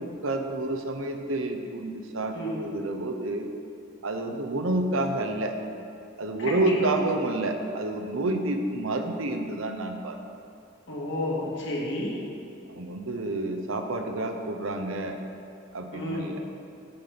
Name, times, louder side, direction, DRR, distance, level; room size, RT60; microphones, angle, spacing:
voice 1, 0.0-3.5 4.0-5.6 6.2-10.2 12.7-15.2 15.7-16.4, right 2 dB, 85° right, 5 dB, 0.8 m, -29 dB
voice 2, 6.4-6.7 10.9-12.2 15.9-16.3, left 1 dB, 60° left, -4 dB, 1.9 m, -31 dB
9.9 x 5.2 x 5.8 m, 2.6 s
head